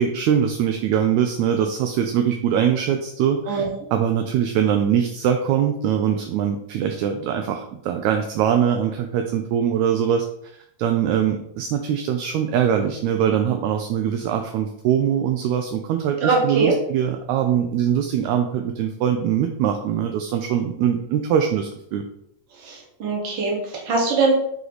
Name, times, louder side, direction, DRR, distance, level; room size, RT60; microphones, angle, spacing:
voice 1, 0.0-3.6 3.9-10.3 10.8-22.0, right 9 dB, 80° right, 5 dB, 1.7 m, -22 dB
voice 2, 16.2-16.7 22.6-24.3, right 4 dB, 45° right, -2 dB, 1.8 m, -22 dB
7.8 x 3.2 x 4.0 m, 0.74 s
omnidirectional pair, 3.7 m